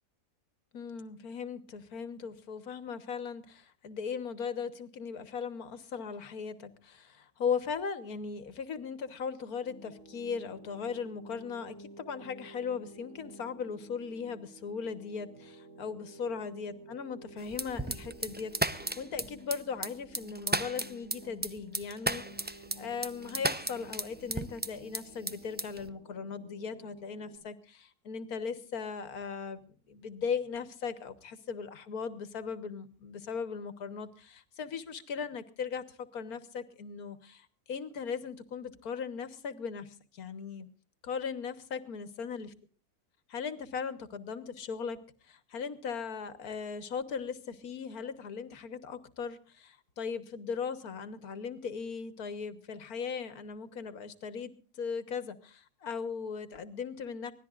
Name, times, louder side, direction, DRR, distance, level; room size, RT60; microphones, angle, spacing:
voice 1, 0.7-40.7 41.0-42.5 43.3-45.0 45.2-57.3, left 6 dB, 75° left, 12 dB, 1.8 m, -38 dB
sound 1, 9.6-27.4, right 1 dB, 40° right, 6.3 m, -52 dB
sound 2, 17.5-25.0 25.3-25.9, right 2 dB, 15° right, 0.4 m, -33 dB
24.5 x 17.5 x 2.5 m, 0.40 s
omnidirectional pair, 1.6 m